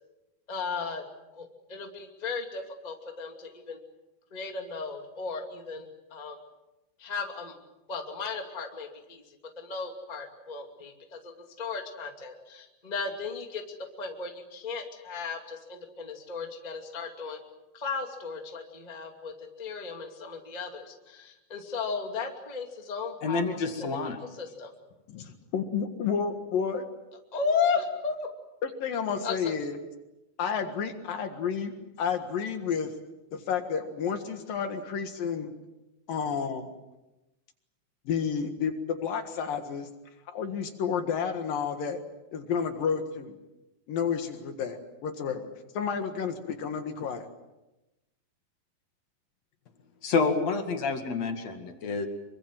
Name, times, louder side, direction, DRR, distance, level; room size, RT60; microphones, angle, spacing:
voice 1, 0.5-1.0 1.3-3.8 4.3-6.4 7.0-7.5 7.9-9.2 9.6-11.3 11.6-17.4 17.7-19.3 19.6-24.0 24.4-24.7 27.3-28.2 29.2-29.5, left 5 dB, 15° left, 3 dB, 1.9 m, -35 dB
voice 2, 23.2-24.2 50.0-52.1, left 4 dB, 50° left, 6 dB, 3.0 m, -28 dB
voice 3, 25.1-26.8 28.6-29.8 30.4-32.9 33.3-35.5 36.1-36.7 38.1-39.9 40.3-42.0 42.3-43.4 43.9-45.5 45.8-47.3, left 6 dB, 65° left, 6 dB, 3.3 m, -31 dB
25.5 x 24.0 x 7.7 m, 0.99 s
omnidirectional pair, 4.4 m